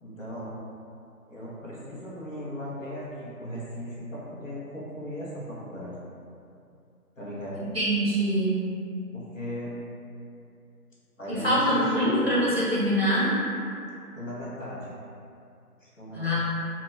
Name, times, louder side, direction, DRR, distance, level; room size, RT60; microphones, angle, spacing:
voice 1, 0.0-0.6 1.3-6.0 7.2-7.7 9.1-9.8 11.2-12.3 14.1-14.9 15.8-16.4, equal, 55° left, -7 dB, 0.6 m, -37 dB
voice 2, 7.7-8.6 11.3-13.3 16.1-16.4, equal, 40° right, -8 dB, 0.7 m, -24 dB
2.1 x 2.0 x 2.9 m, 2.5 s
figure-of-eight pair, 165°, 46 cm